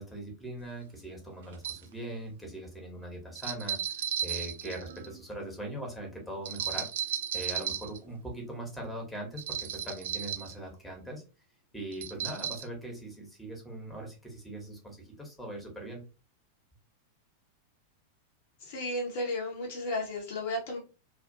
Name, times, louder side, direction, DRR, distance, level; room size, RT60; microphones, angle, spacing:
voice 1, 0.0-6.9 7.3-11.2 11.7-16.0, right 1 dB, 5° left, 0 dB, 1.0 m, -41 dB
sound 1, 0.6-0.7 1.5-1.9 3.4-5.2 6.5-8.0 9.4-10.5 11.9-12.6, right 9 dB, 60° right, 0.3 m, -35 dB
voice 2, 18.6-20.8, left 1 dB, 55° left, 0 dB, 0.7 m, -33 dB
2.5 x 2.4 x 2.5 m, 0.32 s
figure-of-eight pair, 90°, 0 cm